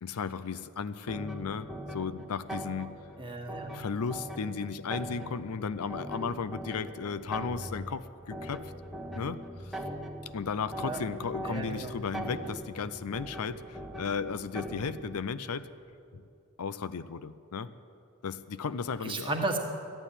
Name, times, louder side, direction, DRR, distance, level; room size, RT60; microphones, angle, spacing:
voice 1, 0.0-2.9 3.7-8.7 9.2-9.8 10.3-15.7 16.1-16.2 16.6-17.7 18.2-19.3, left 5 dB, 80° left, 14 dB, 0.5 m, -35 dB
sound 1, 1.1-15.2, right 1 dB, ahead, 1.2 m, -41 dB
voice 2, 3.2-3.8 10.8-11.0 11.4-11.9 19.0-19.6, right 2 dB, 25° right, 2 dB, 1.6 m, -33 dB
13.5 x 9.1 x 10.0 m, 2.6 s
head